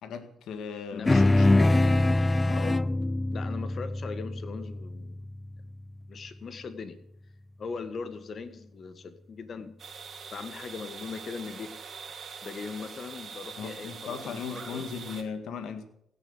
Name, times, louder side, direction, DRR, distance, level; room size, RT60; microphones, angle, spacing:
voice 1, 0.0-2.8 13.6-15.8, left 6 dB, 80° left, 1.8 m, -38 dB
voice 2, 0.9-1.5 2.5-2.8 3.3-5.2 6.1-7.0 7.6-9.7 10.3-11.7 12.4-14.9, left 5 dB, 55° left, 1.7 m, -39 dB
sound 1, 1.1-5.8, left 2 dB, 25° left, 0.7 m, -24 dB
sound 2, 9.8-15.2, right 6 dB, 60° right, 2.8 m, -43 dB
16.5 x 7.1 x 9.6 m
supercardioid pair, 55°, 0 cm